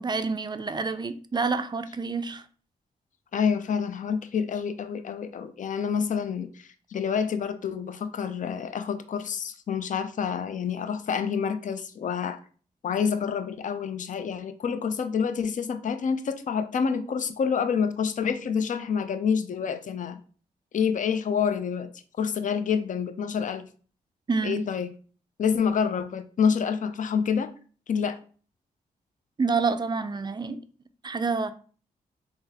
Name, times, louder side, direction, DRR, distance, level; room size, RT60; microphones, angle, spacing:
voice 1, 0.0-2.4 24.3-24.6 29.4-30.6 31.0-31.5, right 4 dB, 25° right, 0.4 m, -28 dB
voice 2, 3.3-12.4 12.8-20.2 20.7-21.9 22.2-23.7 24.4-24.9 25.4-27.5 27.9-28.2, left 6 dB, 50° left, 0.4 m, -27 dB
3.6 x 2.0 x 2.8 m
supercardioid pair, 50°, 17 cm